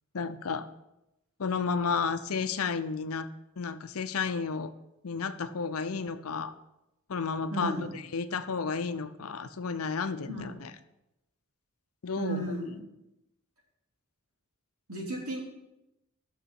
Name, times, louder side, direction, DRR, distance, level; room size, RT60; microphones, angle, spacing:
voice 1, 0.1-0.7 1.4-3.3 3.6-4.7 5.0-6.5 7.1-10.7 12.0-12.6, left 5 dB, 75° left, 11 dB, 0.6 m, -32 dB
voice 2, 7.5-7.8 12.2-12.8 14.9-15.4, right 1 dB, 75° right, -3 dB, 3.4 m, -34 dB
6.9 x 6.6 x 7.6 m, 0.90 s
head